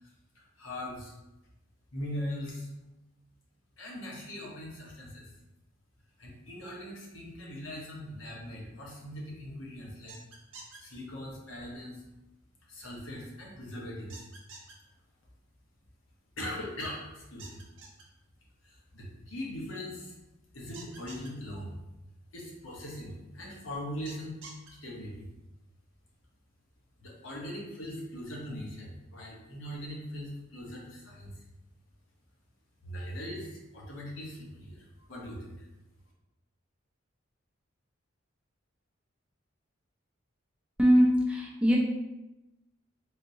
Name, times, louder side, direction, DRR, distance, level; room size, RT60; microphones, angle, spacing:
voice 1, 0.3-1.1 1.9-2.7 3.8-5.2 6.2-10.2 10.8-12.0 12.7-14.2 16.4-17.6 18.6-20.1 20.5-21.8 22.3-24.4 24.8-25.3 27.0-31.3 32.8-34.8 35.1-35.7, left 1 dB, 80° left, -3 dB, 0.9 m, -40 dB
sound 1, 10.1-10.8 14.1-14.7 17.4-18.0 20.7-21.3 24.1-24.7, right 4 dB, 70° right, 0.7 m, -47 dB
voice 2, 40.8-41.8, equal, 5° right, -2 dB, 0.4 m, -22 dB
3.5 x 2.7 x 2.7 m, 0.97 s
head